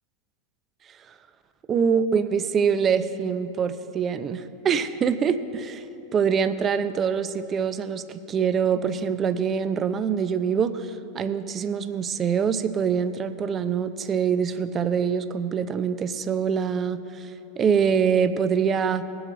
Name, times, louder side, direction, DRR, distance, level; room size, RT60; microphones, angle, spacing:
voice 1, 1.7-5.8 6.1-19.0, right 7 dB, 30° right, 11 dB, 0.6 m, -24 dB
19.5 x 7.9 x 3.9 m, 2.7 s
hypercardioid pair, 100°, 0 cm